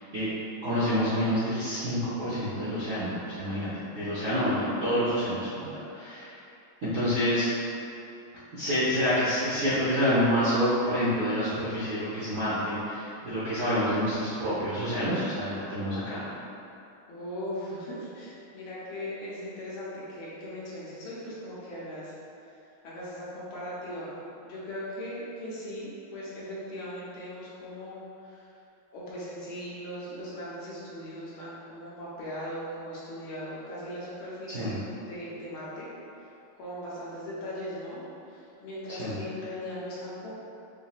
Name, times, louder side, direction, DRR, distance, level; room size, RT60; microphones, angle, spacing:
voice 1, 0.6-6.4 6.8-7.5 8.5-16.2 34.5-34.7 39.0-39.2, equal, 65° right, -12 dB, 0.8 m, -28 dB
voice 2, 17.1-22.5 22.8-28.5 28.9-34.8 35.1-35.9 36.2-36.3 36.6-38.0 38.3-40.3, equal, 75° left, -9 dB, 1.7 m, -39 dB
4.9 x 2.7 x 2.4 m, 2.7 s
omnidirectional pair, 2.4 m